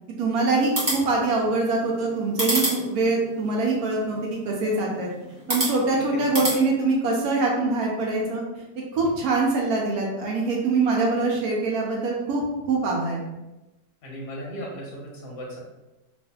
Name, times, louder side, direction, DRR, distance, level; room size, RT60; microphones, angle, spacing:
voice 1, 0.2-5.1 5.5-8.4 8.9-13.2, right 3 dB, 70° right, -1 dB, 0.9 m, -24 dB
sound 1, 0.6-6.6, right 1 dB, 25° right, 0.4 m, -31 dB
voice 2, 14.0-15.6, equal, 65° left, -4 dB, 1.0 m, -36 dB
2.7 x 2.5 x 2.2 m, 0.99 s
omnidirectional pair, 1.9 m